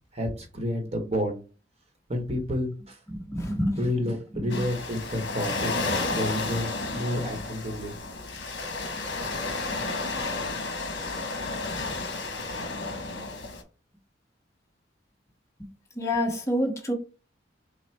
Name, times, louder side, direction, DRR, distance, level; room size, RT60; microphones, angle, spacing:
voice 1, 0.1-1.4 2.1-3.0 3.8-5.7 6.1-7.9, left 1 dB, 35° right, 1.0 m, -30 dB
voice 2, 3.3-3.8 4.4-4.5 16.0-16.9, equal, 15° left, 0.9 m, -27 dB
Waves surf, 4.5-13.6, left 3 dB, 70° left, 1.0 m, -32 dB
5.7 x 2.0 x 3.3 m
head